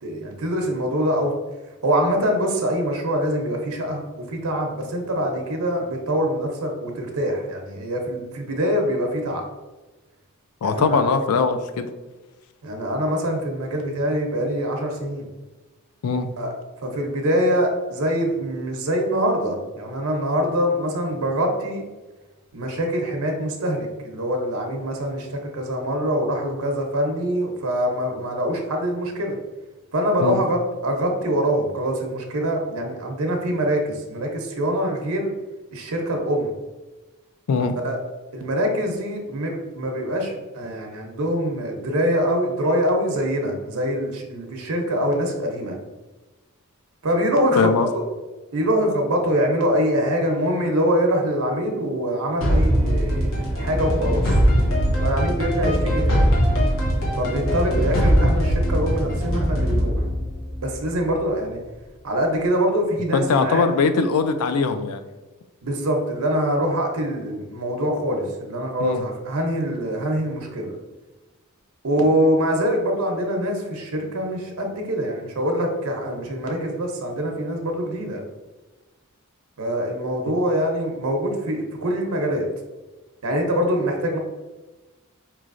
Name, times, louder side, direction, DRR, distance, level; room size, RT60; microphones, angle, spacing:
voice 1, 0.0-1.3 1.8-9.4 10.6-11.0 12.6-15.3 16.4-16.5 16.8-21.8 22.5-29.4 29.9-35.3 35.7-36.5 37.8-38.0 38.3-45.8 47.0-48.0 48.5-54.2 55.0-56.3 57.1-60.0 60.6-61.6 62.0-63.7 65.6-70.7 71.8-78.2 79.6-82.4 83.2-84.2, equal, 80° right, 2 dB, 0.7 m, -24 dB
voice 2, 10.6-11.9 16.0-16.3 30.2-30.4 37.5-37.8 47.6-47.9 63.1-65.0 68.8-69.0, left 4 dB, 90° left, 9 dB, 0.4 m, -21 dB
sound 1, 52.4-61.3, equal, 70° left, 1.1 m, -21 dB
4.6 x 3.1 x 2.5 m, 1.2 s
head